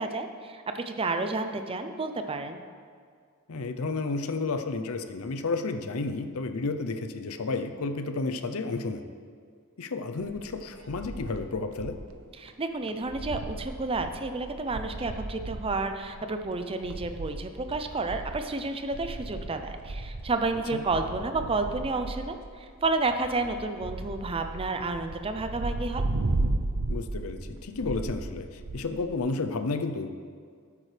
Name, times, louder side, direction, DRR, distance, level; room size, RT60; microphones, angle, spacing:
voice 1, 0.0-2.6 12.4-26.0, right 3 dB, 25° right, 7 dB, 0.5 m, -31 dB
voice 2, 3.5-9.0 9.8-12.0 20.7-20.8 26.9-30.3, left 3 dB, 80° left, 8 dB, 0.6 m, -32 dB
sound 1, 10.2-12.2 12.5-12.6 12.9-29.2, right 2 dB, 70° right, 0.6 m, -35 dB
12.5 x 8.5 x 3.3 m, 2.1 s
head